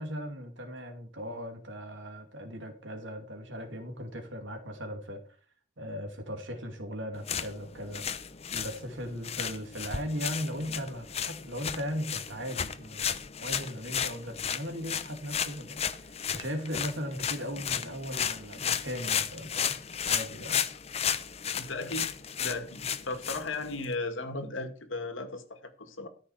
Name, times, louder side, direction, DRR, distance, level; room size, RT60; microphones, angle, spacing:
voice 1, 0.0-5.2 5.8-8.0 8.5-15.9 16.3-19.8 20.1-20.6, equal, 70° right, 5 dB, 2.5 m, -38 dB
Grass Footsteps, 7.1-23.9, left 8 dB, 30° left, 0.7 m, -34 dB
voice 2, 21.5-22.1 22.4-26.1, left 3 dB, 80° left, 7 dB, 2.2 m, -36 dB
13.5 x 6.5 x 4.9 m, 0.41 s
head